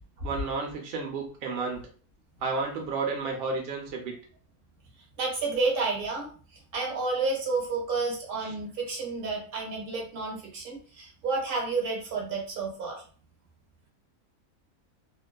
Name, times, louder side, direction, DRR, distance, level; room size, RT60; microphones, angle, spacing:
voice 1, 0.2-1.8 2.4-4.1 8.4-8.5, right 4 dB, 90° right, 1 dB, 0.5 m, -31 dB
voice 2, 5.2-6.3 6.7-13.0, right 3 dB, 50° right, 0 dB, 0.7 m, -30 dB
2.4 x 2.3 x 2.2 m, 0.42 s
omnidirectional pair, 1.6 m